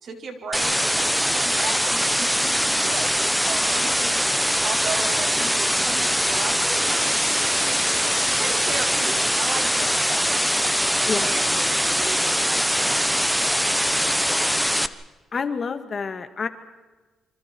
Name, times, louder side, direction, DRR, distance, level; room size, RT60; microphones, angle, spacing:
voice 1, 0.0-4.2 4.6-7.8 8.4-14.2, right 4 dB, 55° right, 3 dB, 5.1 m, -36 dB
sound 1, 0.5-14.9, equal, ahead, 1.2 m, -22 dB
voice 2, 11.1-11.4 15.3-16.5, left 5 dB, 40° left, 9 dB, 2.0 m, -28 dB
28.5 x 26.0 x 4.6 m, 1.2 s
cardioid pair, 90°, 0 cm